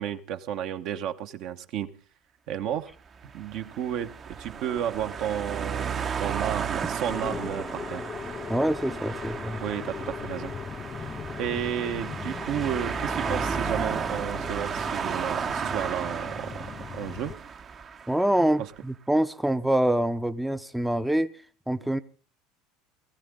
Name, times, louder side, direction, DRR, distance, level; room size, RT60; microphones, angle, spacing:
voice 1, 0.0-1.9 2.5-2.9 3.3-8.1 9.6-10.5 11.4-16.5 16.9-17.3 18.6-18.7, right 10 dB, 60° right, 1.1 m, -32 dB
sound 1, 3.1-18.5, right 6 dB, 35° right, 0.9 m, -34 dB
sound 2, 7.1-17.4, left 6 dB, 30° left, 0.7 m, -38 dB
voice 2, 8.5-9.6 18.1-21.3 21.7-22.0, right 1 dB, 5° right, 0.7 m, -25 dB
19.5 x 15.0 x 3.7 m
hypercardioid pair, 80°, 0 cm